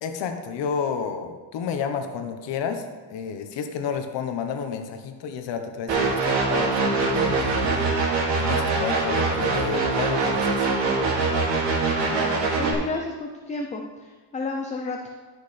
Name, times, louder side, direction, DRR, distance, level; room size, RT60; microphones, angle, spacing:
voice 1, 0.0-2.8 3.1-7.8 8.3-10.7, left 6 dB, 75° left, 6 dB, 1.1 m, -31 dB
sound 1, 5.9-12.7, right 3 dB, 80° right, 2.3 m, -23 dB
voice 2, 12.0-15.1, left 3 dB, 15° left, 2 dB, 0.5 m, -32 dB
12.0 x 6.4 x 3.3 m, 1.4 s
cardioid pair, 140°, 44 cm